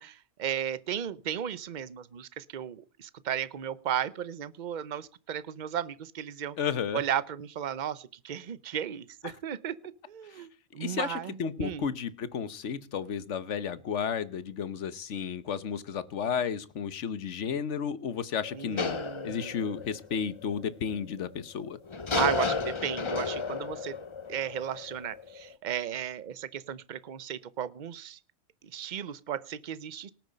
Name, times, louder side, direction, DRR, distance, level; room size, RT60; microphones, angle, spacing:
voice 1, 0.0-6.6 6.9-11.8 18.5-19.5 22.1-24.0 24.3-28.2 28.7-30.1, right 9 dB, 45° right, 17 dB, 0.8 m, -35 dB
voice 2, 6.6-7.0 9.2-9.3 10.3-10.4 10.8-19.0 19.2-21.8, left 7 dB, 70° left, 16 dB, 1.3 m, -33 dB
sound 1, 18.4-20.7 21.9-25.5, left 4 dB, 30° left, 0.7 m, -33 dB
18.5 x 9.2 x 5.2 m, 0.37 s
omnidirectional pair, 1.3 m